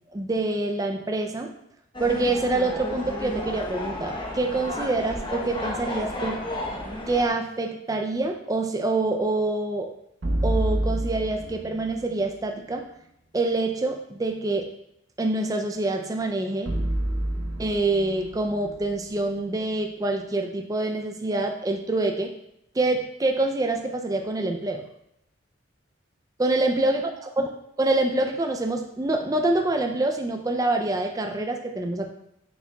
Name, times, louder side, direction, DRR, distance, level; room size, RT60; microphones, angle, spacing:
voice 1, 0.1-1.5 2.0-6.4 7.1-9.9 10.4-12.9 13.3-14.7 15.2-16.7 17.6-22.3 22.7-24.8 26.4-27.1 27.4-27.5 27.8-32.1, right 2 dB, 15° right, 3 dB, 0.3 m, -26 dB
sound 1, 1.9-7.3, left 1 dB, 25° left, 0.9 m, -32 dB
sound 2, 10.2-12.4 16.7-19.9, right 1 dB, 60° right, 0.7 m, -29 dB
6.5 x 6.4 x 2.3 m, 0.78 s
head